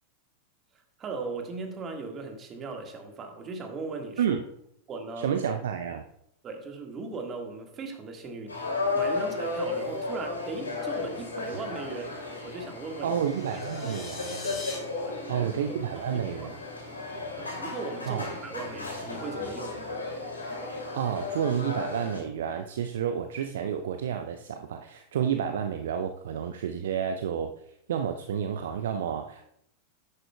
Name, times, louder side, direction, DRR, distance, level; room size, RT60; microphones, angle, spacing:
voice 1, 1.0-4.4 4.9-5.3 6.4-12.1 12.4-13.2 13.8-14.1 15.0-16.5 17.4-19.8, right 3 dB, 25° right, 4 dB, 1.6 m, -38 dB
voice 2, 5.2-6.0 13.0-14.6 15.3-16.6 18.1-18.3 20.9-27.5 27.9-29.5, right 8 dB, 60° right, 7 dB, 0.5 m, -30 dB
sound 1, 8.5-22.2, left 3 dB, 80° left, 2.6 m, -34 dB
sound 2, 13.2-14.8, left 3 dB, 35° left, 3.6 m, -42 dB
11.0 x 9.8 x 2.3 m, 0.76 s
figure-of-eight pair, 90°, 0 cm